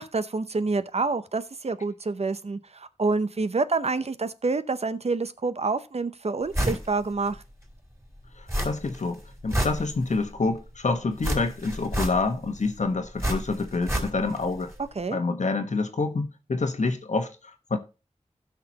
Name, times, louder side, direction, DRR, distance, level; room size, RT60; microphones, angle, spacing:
voice 1, 0.0-7.4 15.0-15.2, right 3 dB, 60° right, 0.7 m, -27 dB
sound 1, 6.5-6.9 7.3-7.4 8.5-9.0 9.3-10.3 11.2-12.5 13.2-14.4 14.7-14.8, equal, 20° right, 3.8 m, -29 dB
voice 2, 8.4-14.7 15.1-17.8, left 3 dB, 75° left, 1.2 m, -27 dB
16.5 x 5.9 x 2.9 m
wide cardioid pair, 60°, 12 cm